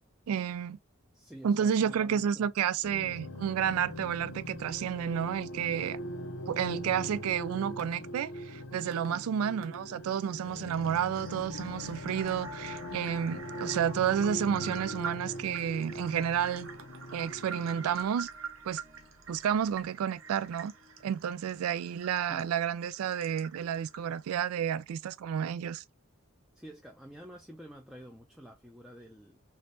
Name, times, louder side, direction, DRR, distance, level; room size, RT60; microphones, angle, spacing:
voice 1, 0.3-0.8 1.4-6.0 6.5-16.7 17.1-18.3 18.6-18.8 19.3-20.7 21.0-25.8, right 8 dB, 90° right, 0.3 m, -31 dB
voice 2, 1.1-2.5 9.0-9.3 22.3-22.5 26.5-29.4, equal, 5° right, 0.4 m, -49 dB
sound 1, 2.8-18.1, left 1 dB, 65° left, 0.6 m, -41 dB
sound 2, 7.8-7.9 8.9-9.1 9.6-9.8 10.1-24.3, right 6 dB, 65° right, 0.7 m, -46 dB
sound 3, 11.8-22.0, left 1 dB, 30° right, 0.8 m, -60 dB
3.4 x 3.0 x 2.6 m
head